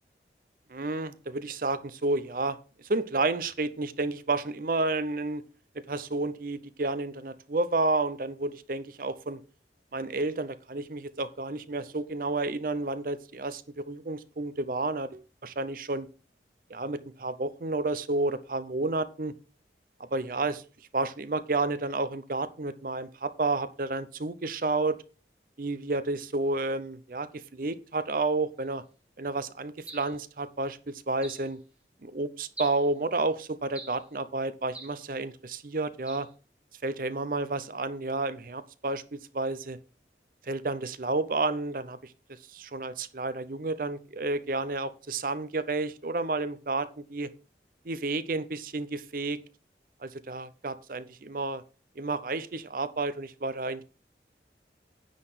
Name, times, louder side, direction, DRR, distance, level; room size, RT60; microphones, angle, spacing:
voice 1, 0.7-2.6 2.9-5.4 5.9-9.4 9.9-16.1 16.7-19.3 20.1-20.6 20.9-25.0 25.6-27.3 27.5-28.8 29.2-30.8 31.1-31.6 32.0-36.3 36.8-39.8 40.5-42.1 42.5-47.3 47.9-49.4 50.0-51.6 52.0-53.8, right 2 dB, 50° right, 14 dB, 0.6 m, -31 dB
sound 1, 29.9-30.2 31.2-31.5 32.6-32.9 33.7-34.1 34.7-35.0 36.1-36.3, right 2 dB, 5° right, 1.3 m, -44 dB
9.8 x 4.0 x 6.7 m, 0.36 s
head